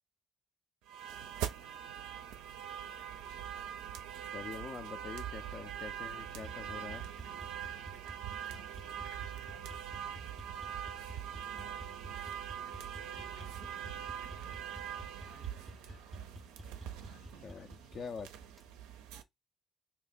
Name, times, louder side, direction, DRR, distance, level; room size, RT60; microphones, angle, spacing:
sound 1, 0.9-19.2, right 9 dB, 80° right, 0.4 m, -43 dB
voice 1, 1.3-2.6 7.9-11.2 11.5-12.1 12.9-16.0 17.0-18.2, left 2 dB, 75° left, 1.2 m, -64 dB
voice 2, 4.3-7.0 17.4-17.7 17.9-18.3, left 6 dB, 55° left, 0.4 m, -44 dB
sound 2, 6.2-18.7, right 1 dB, 20° right, 0.4 m, -52 dB
2.8 x 2.1 x 4.1 m
hypercardioid pair, 50°, 0 cm